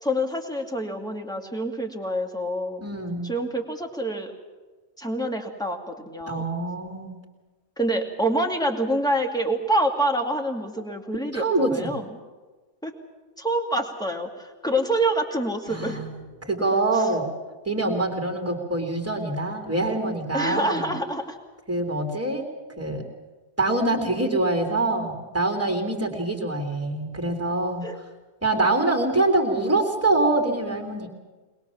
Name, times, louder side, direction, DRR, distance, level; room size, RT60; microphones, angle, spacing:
voice 1, 0.0-2.8 3.2-4.3 5.0-6.4 7.8-12.1 12.8-12.9 13.4-16.0 20.3-21.4 27.8-28.0, right 1 dB, 5° left, 2 dB, 2.4 m, -26 dB
voice 2, 2.8-3.3 6.3-7.2 11.3-11.9 15.7-17.3 17.6-20.9 21.7-22.5 22.8-23.0 23.6-27.9 28.4-31.1, right 2 dB, 10° right, 3 dB, 3.3 m, -25 dB
22.0 x 21.5 x 7.2 m, 1.3 s
omnidirectional pair, 1.1 m